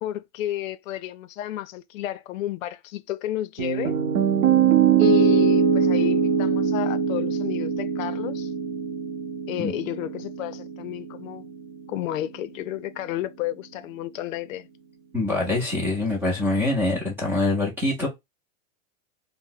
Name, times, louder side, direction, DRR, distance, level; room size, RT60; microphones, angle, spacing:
voice 1, 0.0-4.0 5.0-8.5 9.5-11.5 11.9-14.7, left 13 dB, 75° left, 0.5 m, -32 dB
Piano, 3.6-11.7, right 7 dB, 45° right, 0.6 m, -22 dB
voice 2, 15.1-18.1, left 2 dB, 5° right, 0.4 m, -24 dB
2.6 x 2.1 x 3.7 m
supercardioid pair, 155°, 40 cm